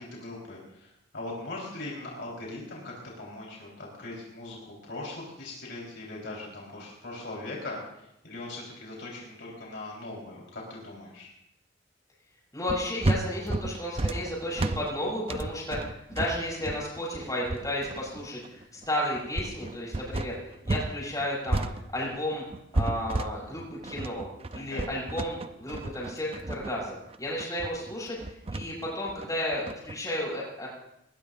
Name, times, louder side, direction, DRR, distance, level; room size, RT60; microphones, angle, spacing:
voice 1, 0.0-11.3 24.6-24.9, left 2 dB, 65° left, -3 dB, 4.2 m, -40 dB
voice 2, 12.5-22.4 22.7-30.7, left 1 dB, 20° left, -5 dB, 7.7 m, -33 dB
sound 1, 12.7-20.9 21.2-30.0, right 2 dB, 30° right, 0.6 m, -32 dB
21.0 x 20.0 x 2.6 m, 0.82 s
head